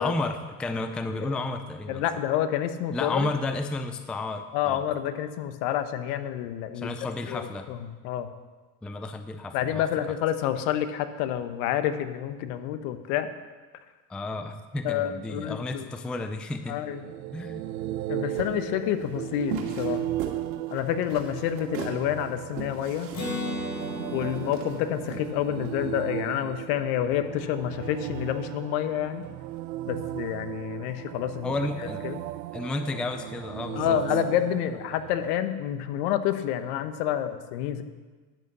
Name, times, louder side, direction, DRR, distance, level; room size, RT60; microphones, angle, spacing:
voice 1, 0.0-2.2 2.9-4.8 6.7-7.7 8.8-9.9 14.1-16.8 17.3-17.6 31.4-32.1 32.5-34.0, left 2 dB, ahead, 9 dB, 0.4 m, -32 dB
voice 2, 1.9-3.3 4.5-6.9 7.3-8.3 9.5-13.3 14.8-15.9 16.7-17.1 18.1-20.0 20.7-23.1 24.1-29.2 29.9-31.5 32.0-32.2 33.7-37.8, left 11 dB, 65° left, 10 dB, 1.1 m, -28 dB
sound 1, 16.6-35.4, right 15 dB, 85° right, 0.6 m, -36 dB
sound 2, 18.3-25.8, right 7 dB, 65° right, 2.2 m, -39 dB
Acoustic guitar, 23.1-26.8, left 1 dB, 35° left, 3.8 m, -36 dB
10.5 x 8.0 x 6.7 m, 1.3 s
hypercardioid pair, 95°, 50 cm